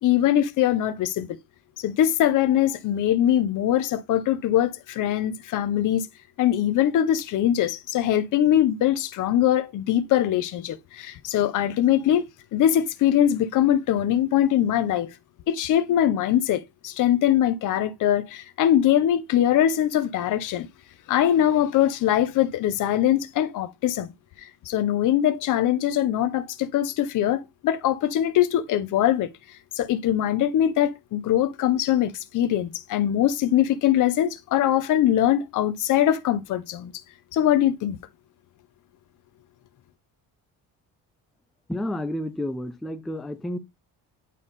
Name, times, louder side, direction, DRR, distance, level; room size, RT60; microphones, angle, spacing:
voice 1, 0.0-1.3 1.8-6.1 6.4-12.2 12.5-15.1 15.5-20.7 21.1-24.1 24.7-29.3 29.7-36.9 37.3-38.0, left 11 dB, 50° left, 0.7 m, -22 dB
voice 2, 41.7-43.6, left 1 dB, ahead, 0.3 m, -30 dB
9.2 x 3.5 x 4.0 m
cardioid pair, 160°, 39 cm